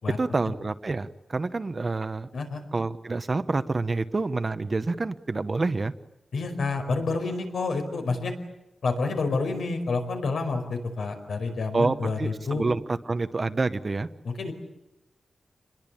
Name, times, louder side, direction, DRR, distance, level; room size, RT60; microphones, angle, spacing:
voice 1, 0.2-2.3 2.7-5.9 11.7-14.1, right 3 dB, 30° right, 11 dB, 0.9 m, -28 dB
voice 2, 6.3-8.3 8.8-12.7 14.2-14.5, left 3 dB, 85° left, 5 dB, 5.1 m, -28 dB
28.5 x 21.5 x 8.6 m, 0.92 s
wide cardioid pair, 170°, 0 cm